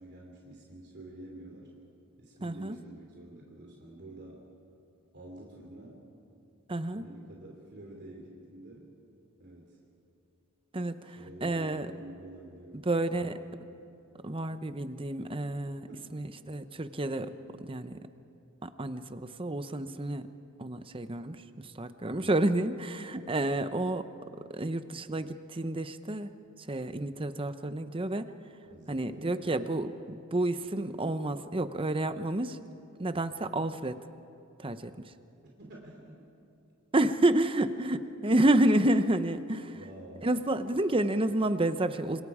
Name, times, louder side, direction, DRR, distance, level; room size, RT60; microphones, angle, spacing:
voice 1, 0.0-1.7 2.2-4.4 5.1-6.0 6.8-8.9 9.4-9.8 11.1-13.6 15.9-16.3 22.1-22.3 28.6-29.5 35.6-36.3 39.7-40.3, right 1 dB, 50° right, -1 dB, 3.1 m, -49 dB
voice 2, 2.4-2.8 6.7-7.0 10.7-11.9 12.8-13.4 14.2-18.1 18.6-20.3 20.6-24.1 24.5-26.3 26.7-28.3 28.9-32.6 33.0-34.0 34.6-34.9 36.9-39.8 40.2-42.2, right 1 dB, 25° right, 11 dB, 0.8 m, -30 dB
28.5 x 26.5 x 5.0 m, 2.6 s
head